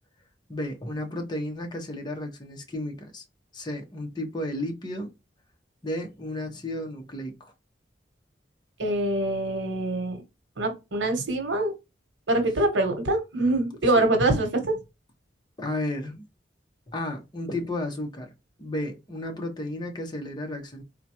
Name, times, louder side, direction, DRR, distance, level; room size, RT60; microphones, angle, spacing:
voice 1, 0.5-3.2 3.5-5.1 5.8-7.5 13.9-14.1 15.6-16.2 16.9-18.3 18.6-20.8, left 1 dB, 25° left, 0.8 m, -33 dB
voice 2, 8.8-10.2 10.6-11.7 12.3-14.8, right 2 dB, 90° right, 1.0 m, -24 dB
3.7 x 2.2 x 2.8 m
head